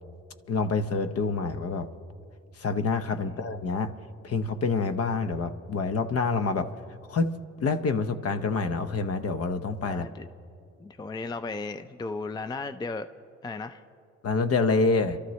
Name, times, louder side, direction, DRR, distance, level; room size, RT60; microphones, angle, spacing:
voice 1, 0.5-1.9 2.6-3.9 4.2-6.7 7.1-7.3 7.6-10.1 14.2-15.2, left 4 dB, 50° left, 10 dB, 0.9 m, -27 dB
voice 2, 9.9-10.3 10.8-13.1 13.4-13.8, left 3 dB, 15° left, 10 dB, 0.4 m, -35 dB
27.0 x 13.0 x 3.1 m, 2.4 s
cardioid pair, 90°, 30 cm